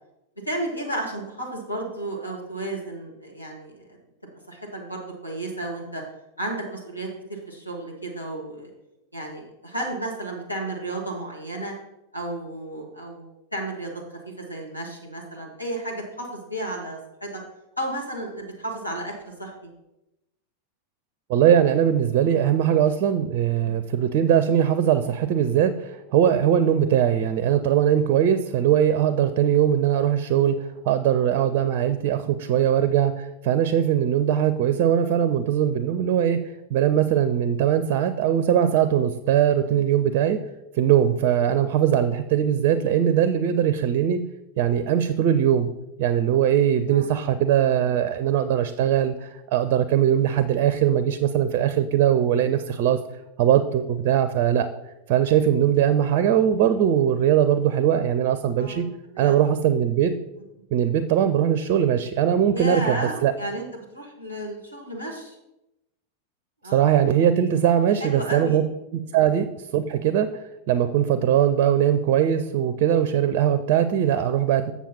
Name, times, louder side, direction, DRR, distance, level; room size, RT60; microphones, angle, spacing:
voice 1, 0.4-4.0 4.5-6.0 6.4-8.7 9.1-11.7 12.1-17.4 17.8-19.7 23.6-23.8 39.6-39.8 46.9-47.1 58.6-58.8 59.1-59.4 62.5-65.4 66.6-66.8 68.0-68.6 69.1-69.3, right 1 dB, 85° left, -1 dB, 1.6 m, -33 dB
voice 2, 21.3-30.6 30.8-36.4 36.7-40.4 40.7-44.2 44.6-45.7 46.0-53.0 53.4-54.7 55.1-58.8 59.2-60.1 60.7-63.3 66.7-68.6 68.9-70.3 70.7-74.7, right 9 dB, 45° right, 12 dB, 0.5 m, -21 dB
7.3 x 7.1 x 4.2 m, 0.91 s
figure-of-eight pair, 90°, 0 cm